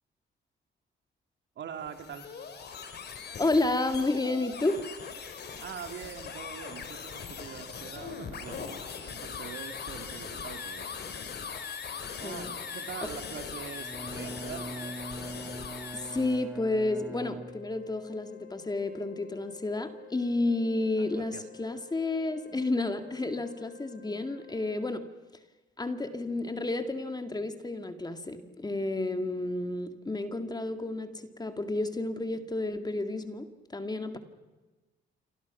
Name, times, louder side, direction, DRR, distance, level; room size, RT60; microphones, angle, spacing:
voice 1, 1.6-2.3 5.6-8.7 9.0-11.3 12.2-15.0 21.0-21.5, right 8 dB, 65° right, 7 dB, 2.8 m, -43 dB
sound 1, 1.8-16.4, left 6 dB, 55° left, 4.1 m, -40 dB
voice 2, 3.4-4.9 11.9-12.5 13.0-13.1 15.9-25.1 25.8-34.2, left 2 dB, 20° left, 8 dB, 2.1 m, -31 dB
Bowed string instrument, 13.8-18.0, right 2 dB, 10° right, 1.5 m, -42 dB
Wind instrument woodwind instrument, 15.9-25.1, left 19 dB, 80° left, 3.4 m, -52 dB
28.0 x 23.5 x 6.1 m, 1.2 s
cardioid pair, 90°, 20 cm